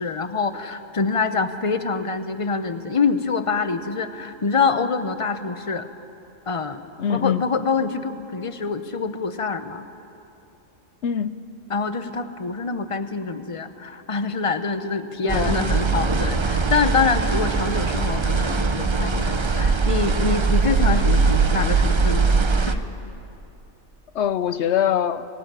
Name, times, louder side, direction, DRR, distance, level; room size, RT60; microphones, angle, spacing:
voice 1, 0.0-5.9 6.5-6.8 7.1-9.8 11.7-22.3 22.7-22.8, left 4 dB, 30° left, 10 dB, 0.8 m, -25 dB
voice 2, 7.0-7.4 11.0-11.4 15.2-15.6 24.1-25.3, left 9 dB, 65° left, 13 dB, 0.9 m, -23 dB
sound 1, 15.3-22.7, right 4 dB, 30° right, 0.6 m, -21 dB
18.5 x 18.0 x 9.1 m, 2.7 s
omnidirectional pair, 1.3 m